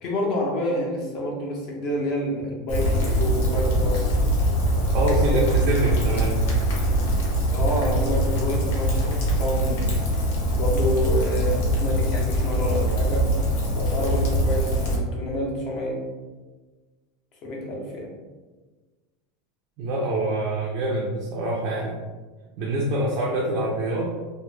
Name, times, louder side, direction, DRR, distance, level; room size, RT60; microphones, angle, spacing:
voice 1, 0.0-4.3 5.3-6.1 7.5-9.9 10.5-13.3 13.8-16.0 17.4-18.1, left 1 dB, 35° left, -1 dB, 0.5 m, -28 dB
Rain, 2.7-15.0, equal, 75° left, 0.7 m, -23 dB
voice 2, 4.9-6.4 19.8-22.0 22.6-24.1, right 1 dB, 40° right, -3 dB, 0.3 m, -25 dB
2.1 x 2.0 x 3.0 m, 1.3 s
supercardioid pair, 175°, 0 cm